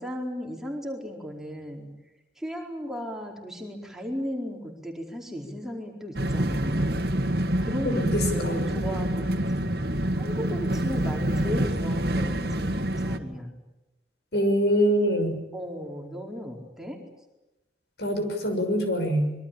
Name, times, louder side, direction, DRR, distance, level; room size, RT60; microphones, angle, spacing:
voice 1, 0.0-1.9 2.4-7.0 7.6-9.4 10.2-13.5 15.5-17.0, equal, 5° right, 0 dB, 4.5 m, -35 dB
sound 1, 6.1-13.2, right 1 dB, 60° right, 1.9 m, -27 dB
voice 2, 7.8-8.6 14.3-15.4 18.0-19.3, equal, 70° left, 6 dB, 6.4 m, -24 dB
26.0 x 23.5 x 8.8 m, 0.98 s
head